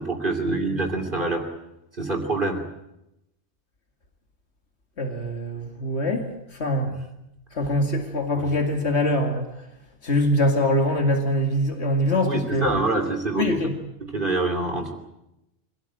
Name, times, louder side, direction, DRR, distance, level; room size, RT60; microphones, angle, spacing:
voice 1, 0.0-1.4 2.0-2.6 8.4-8.5 12.2-13.5 14.0-15.0, right 2 dB, 50° right, 2 dB, 3.0 m, -25 dB
voice 2, 5.0-6.3 6.6-6.9 7.5-9.5 10.0-12.7 13.4-13.7, left 1 dB, 85° left, 4 dB, 2.6 m, -23 dB
25.0 x 17.5 x 9.2 m, 0.87 s
omnidirectional pair, 1.1 m